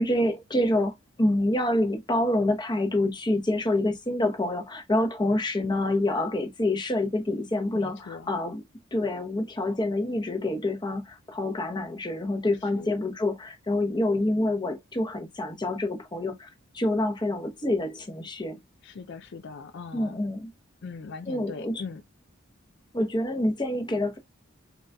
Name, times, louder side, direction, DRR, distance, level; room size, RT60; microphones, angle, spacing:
voice 1, 0.0-8.6 8.9-18.6 19.9-20.5 21.3-21.8 22.9-24.2, left 1 dB, 20° left, 0.8 m, -27 dB
voice 2, 7.7-8.3 12.6-12.9 18.8-20.2 20.8-22.0, left 4 dB, 60° left, 0.4 m, -40 dB
3.9 x 3.7 x 2.2 m
head